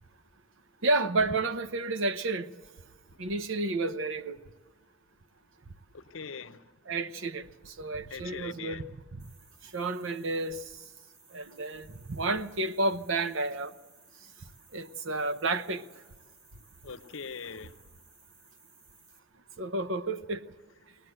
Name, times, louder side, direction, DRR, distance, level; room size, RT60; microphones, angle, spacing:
voice 1, 0.8-2.5 3.2-4.4 6.9-8.8 9.1-9.3 9.6-10.6 11.3-13.7 14.7-15.8 19.6-20.4, right 2 dB, 65° right, 0.9 m, -31 dB
voice 2, 5.9-6.7 8.1-8.9 16.8-17.9, left 5 dB, 65° left, 0.8 m, -42 dB
sound 1, 9.2-19.2, right 4 dB, 90° right, 3.6 m, -60 dB
21.5 x 19.0 x 7.8 m
head